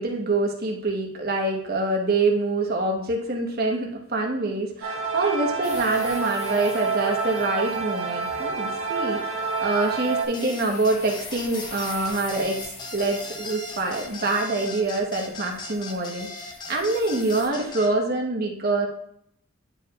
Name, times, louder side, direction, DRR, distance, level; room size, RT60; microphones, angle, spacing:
voice 1, 0.0-16.3 16.7-18.9, right 2 dB, 45° right, 1 dB, 1.2 m, -25 dB
sound 1, 4.8-10.2, right 5 dB, 75° right, 1.3 m, -28 dB
sound 2, 5.6-17.5, left 3 dB, 80° left, 1.8 m, -44 dB
sound 3, 10.3-17.9, left 2 dB, 20° left, 0.6 m, -38 dB
10.5 x 4.8 x 2.4 m, 0.69 s
head